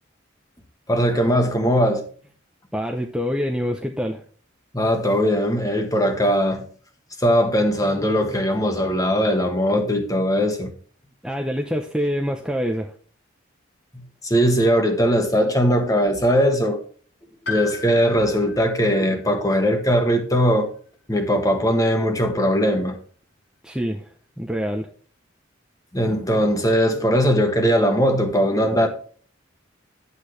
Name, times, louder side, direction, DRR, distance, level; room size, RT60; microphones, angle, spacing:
voice 1, 0.9-2.0 4.7-6.7 7.2-10.7 13.9-16.8 17.5-20.7 21.1-23.0 25.9-28.9, equal, 15° left, 1.4 m, -20 dB
voice 2, 2.7-4.2 11.2-12.9 23.6-24.9, equal, 5° right, 0.7 m, -26 dB
Piano, 17.4-21.3 21.6-21.7 22.8-22.9, left 5 dB, 55° left, 4.7 m, -37 dB
10.5 x 8.3 x 3.2 m
head